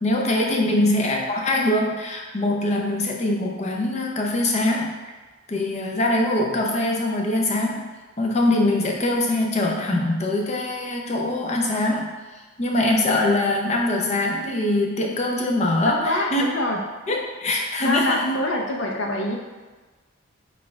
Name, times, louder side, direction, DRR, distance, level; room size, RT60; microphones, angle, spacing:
voice 1, 0.0-4.9 5.5-7.9 8.2-12.1 12.6-16.5 17.1-18.2, left 1 dB, 35° left, 0 dB, 0.6 m, -23 dB
voice 2, 15.8-16.8 17.8-19.4, left 1 dB, 70° left, 0 dB, 0.7 m, -25 dB
4.2 x 2.5 x 4.4 m, 1.3 s
head